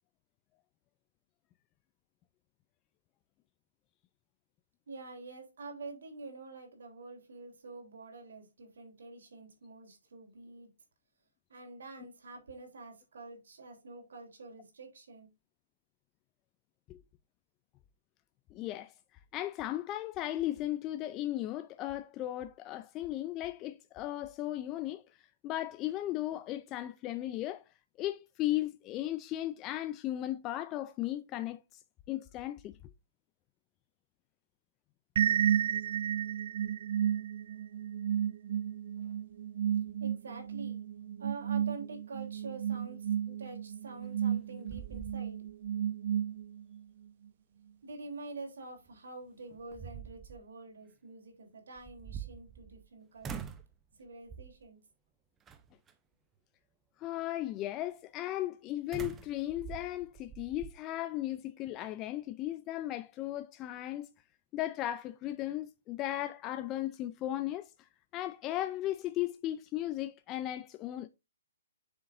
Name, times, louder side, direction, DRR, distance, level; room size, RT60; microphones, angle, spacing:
voice 1, 4.9-10.7 11.5-15.3 39.0-39.2 39.8-43.1 43.4-45.4 47.8-53.4 54.0-54.8, right 3 dB, 70° right, 3.7 m, -47 dB
voice 2, 18.5-18.9 19.3-27.6 28.0-31.8 32.1-32.8 57.0-64.1 64.5-71.1, left 14 dB, 25° left, 0.4 m, -36 dB
sound 1, 35.2-46.8, right 9 dB, 55° right, 0.4 m, -33 dB
sound 2, 44.0-44.4 44.7-45.7 46.1-46.2 48.9-49.0 49.5-50.4 51.8-52.9 53.2-53.7 54.3-54.7 55.5-55.9 58.9-60.7, right 8 dB, 15° right, 0.8 m, -44 dB
7.4 x 6.8 x 2.6 m
hypercardioid pair, 140°, 0 cm